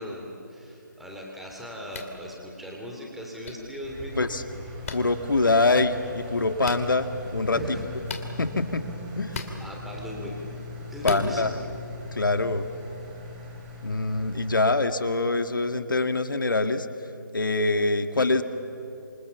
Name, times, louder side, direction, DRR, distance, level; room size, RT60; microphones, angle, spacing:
voice 1, 0.0-4.4 7.5-7.8 9.3-10.4 10.9-11.6, equal, ahead, -2 dB, 3.2 m, -38 dB
sound 1, 1.9-2.1 3.4-3.5 4.8-5.0 6.6-6.8 8.0-8.3 9.3-9.5 11.0-11.3, left 5 dB, 45° left, 2.8 m, -33 dB
Engine, 3.8-14.6, left 1 dB, 20° right, 5.0 m, -40 dB
voice 2, 4.9-7.6 8.4-8.8 9.2-9.3 11.0-11.5 12.1-12.7 13.8-16.9 17.3-18.4, left 3 dB, 75° left, 8 dB, 1.9 m, -24 dB
27.5 x 26.0 x 7.1 m, 2.8 s
figure-of-eight pair, 155°, 11 cm